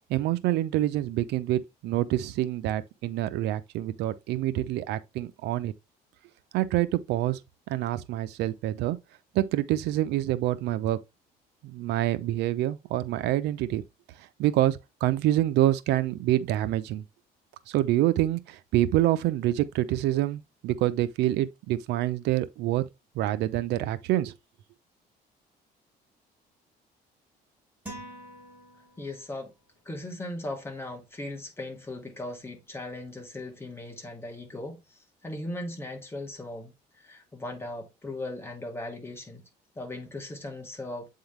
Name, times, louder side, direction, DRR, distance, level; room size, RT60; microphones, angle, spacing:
voice 1, 0.1-5.7 6.5-7.4 7.7-9.0 9.3-11.0 11.6-13.8 14.4-17.0 17.7-22.8 23.2-24.3, right 14 dB, 85° right, 0.7 m, -26 dB
sound 1, 27.9-29.4, right 1 dB, 10° right, 3.4 m, -44 dB
voice 2, 29.0-29.5 29.9-39.4 39.8-41.1, left 1 dB, 15° left, 2.3 m, -38 dB
8.0 x 3.8 x 3.2 m
cardioid pair, 110°, 17 cm